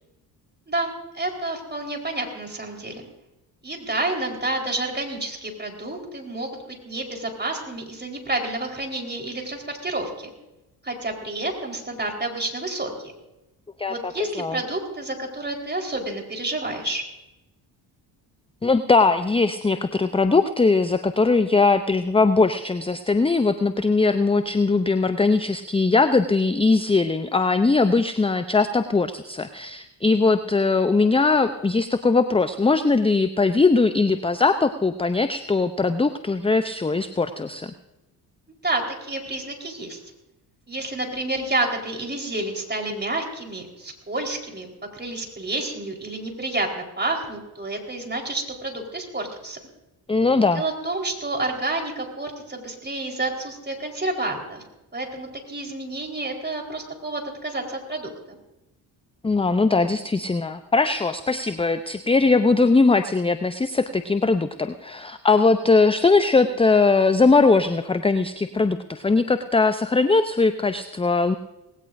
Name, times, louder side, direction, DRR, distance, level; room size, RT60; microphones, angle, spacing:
voice 1, 0.7-3.1 3.6-10.3 10.8-13.1 13.9-17.0 38.6-40.0 40.7-44.7 44.9-49.6 50.5-54.6 54.9-58.4, right 2 dB, 20° right, 1 dB, 4.4 m, -29 dB
voice 2, 13.8-14.6 18.6-37.7 50.1-50.6 59.2-71.3, left 3 dB, 10° left, 11 dB, 0.7 m, -20 dB
19.0 x 17.5 x 2.7 m, 0.97 s
hypercardioid pair, 50°, 50 cm